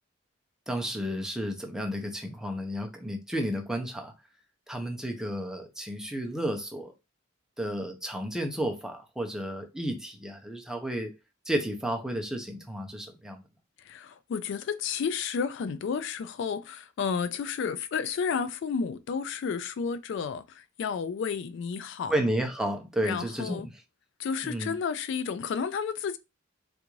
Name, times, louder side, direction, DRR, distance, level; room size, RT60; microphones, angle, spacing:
voice 1, 0.7-4.1 4.7-6.9 7.6-11.1 11.5-13.4 22.1-23.7 24.4-24.7, equal, 5° right, 0.6 m, -32 dB
voice 2, 13.8-22.2 23.0-23.7 24.2-26.2, left 6 dB, 65° left, 0.3 m, -31 dB
3.4 x 2.5 x 3.1 m
head